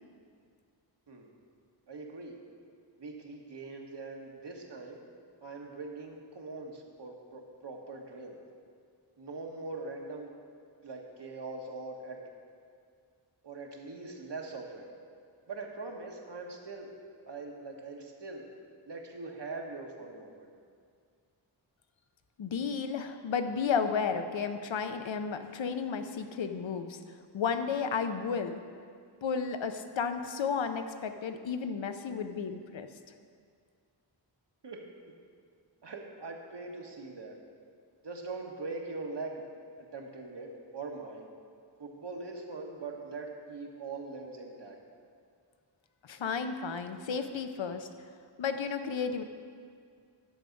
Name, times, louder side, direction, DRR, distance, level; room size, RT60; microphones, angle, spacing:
voice 1, 1.9-2.4 3.0-5.1 5.4-8.4 9.2-10.3 10.8-12.2 13.4-14.9 15.5-16.9 17.3-18.4 18.9-20.5 34.6-34.8 35.8-37.3 38.0-39.4 39.8-41.3 41.8-44.8, right 3 dB, 65° right, 1 dB, 1.3 m, -42 dB
voice 2, 22.4-27.0 27.3-28.5 29.2-32.9 46.0-47.9 48.4-49.2, left 6 dB, 90° left, 8 dB, 0.7 m, -33 dB
11.0 x 7.0 x 5.2 m, 2.1 s
wide cardioid pair, 95°, 45 cm